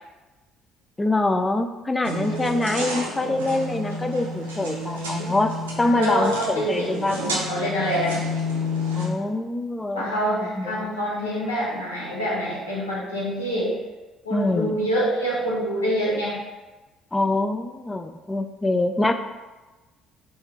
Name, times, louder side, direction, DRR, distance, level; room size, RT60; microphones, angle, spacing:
voice 1, 1.0-7.2 9.0-10.9 14.3-14.8 17.1-19.1, left 2 dB, 20° left, 7 dB, 0.3 m, -25 dB
sound 1, 2.0-9.1, left 1 dB, 80° right, 0.5 m, -30 dB
voice 2, 5.8-8.2 9.9-13.7 14.2-16.4, equal, 85° left, -7 dB, 0.9 m, -26 dB
3.4 x 3.1 x 3.0 m, 1.2 s
figure-of-eight pair, 50°, 0 cm